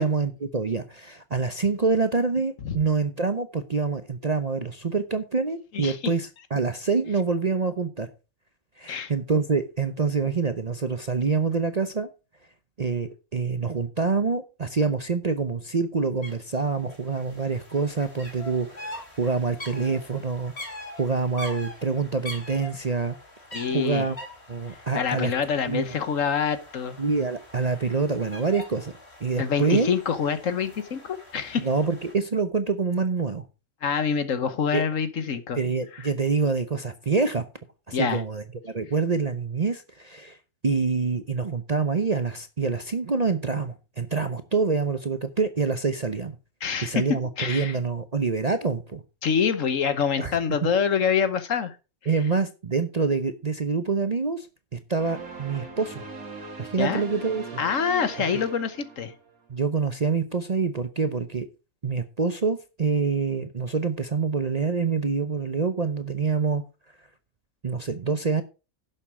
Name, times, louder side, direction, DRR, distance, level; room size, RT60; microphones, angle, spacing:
voice 1, 0.0-8.1 8.8-12.1 12.8-20.7 21.0-23.2 23.7-24.2 24.5-25.3 25.7-26.0 27.0-28.9 29.2-29.9 31.6-33.5 34.7-34.8 35.6-37.4 37.9-40.4 40.6-46.4 46.8-49.0 50.2-50.4 52.1-54.5 54.7-56.0 56.6-57.6 59.5-61.5 61.8-66.6 67.6-68.4, right 4 dB, 35° right, 0.7 m, -26 dB
sound 1, 16.2-16.3 16.6-32.1, left 1 dB, 45° left, 3.8 m, -43 dB
voice 2, 23.5-24.1 24.9-27.0 29.4-31.7 33.8-35.6 35.9-36.0 37.9-38.2 46.6-47.1 47.4-47.8 49.2-51.8 56.8-57.0 57.6-59.1, left 6 dB, 65° left, 1.4 m, -26 dB
sound 2, 55.0-59.5, right 4 dB, 75° right, 2.9 m, -40 dB
11.0 x 7.3 x 4.8 m
omnidirectional pair, 1.5 m